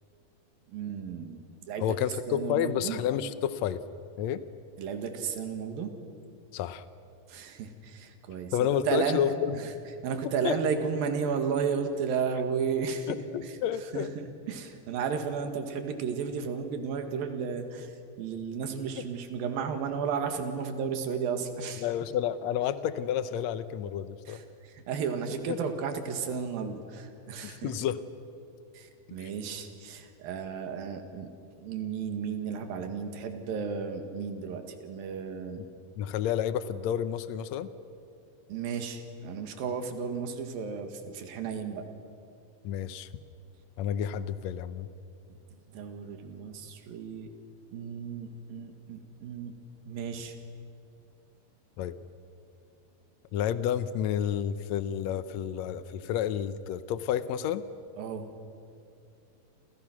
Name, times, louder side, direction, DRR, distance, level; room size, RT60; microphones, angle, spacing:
voice 1, 0.7-3.0 4.8-5.9 7.3-9.2 9.5-9.7 10.0-13.6 13.9-21.9 24.3-27.7 28.7-31.3 31.6-35.6 38.5-41.9 45.7-47.4 47.7-49.5 49.9-50.4 58.0-58.3, right 6 dB, 75° right, 6 dB, 3.6 m, -33 dB
voice 2, 1.8-3.8 4.2-4.4 6.5-6.8 8.5-9.6 10.4-10.6 13.1-14.1 19.0-19.1 21.8-24.4 25.5-25.6 27.4-28.0 29.2-29.3 36.0-37.7 42.6-43.1 43.8-44.9 51.8-52.0 53.3-57.6, left 10 dB, 80° left, 13 dB, 1.5 m, -30 dB
29.0 x 28.0 x 6.2 m, 2.5 s
omnidirectional pair, 4.2 m